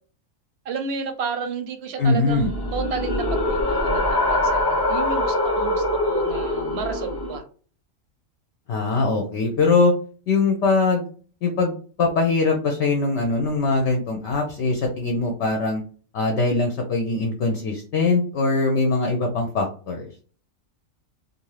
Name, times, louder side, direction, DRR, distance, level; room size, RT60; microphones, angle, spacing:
voice 1, 0.7-7.4, right 5 dB, 60° right, 6 dB, 0.8 m, -31 dB
voice 2, 2.0-2.5 8.7-9.9 10.3-11.0 11.4-11.7 12.0-15.8 16.1-20.1, left 3 dB, 65° left, 2 dB, 0.8 m, -22 dB
sound 1, 2.2-7.4, left 1 dB, 25° left, 0.6 m, -23 dB
2.6 x 2.4 x 3.1 m, 0.41 s
omnidirectional pair, 1.4 m